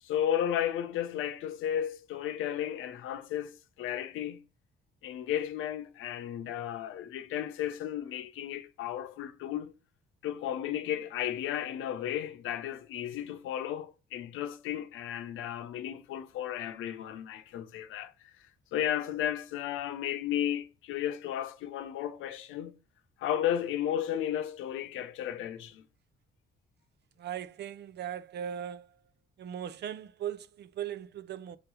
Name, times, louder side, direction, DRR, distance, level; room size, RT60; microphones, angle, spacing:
voice 1, 0.0-4.4 5.0-9.7 10.2-18.1 18.7-22.8 23.2-25.8, left 10 dB, 90° left, 0.8 m, -34 dB
voice 2, 27.2-29.0 29.4-31.6, right 9 dB, 60° right, 0.6 m, -38 dB
6.3 x 3.1 x 4.8 m
cardioid pair, 90°, 20 cm